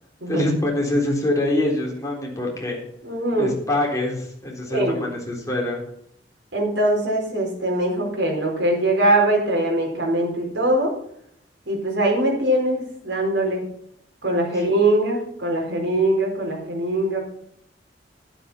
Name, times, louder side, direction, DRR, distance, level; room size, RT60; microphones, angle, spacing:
voice 1, 0.3-2.8 3.4-5.8 14.5-14.6, left 1 dB, 20° left, -1 dB, 3.8 m, -24 dB
voice 2, 3.0-3.5 4.7-5.0 6.5-10.9 11.7-13.6 14.2-17.2, right 1 dB, 85° right, -1 dB, 4.7 m, -22 dB
11.5 x 10.0 x 5.7 m, 0.69 s
head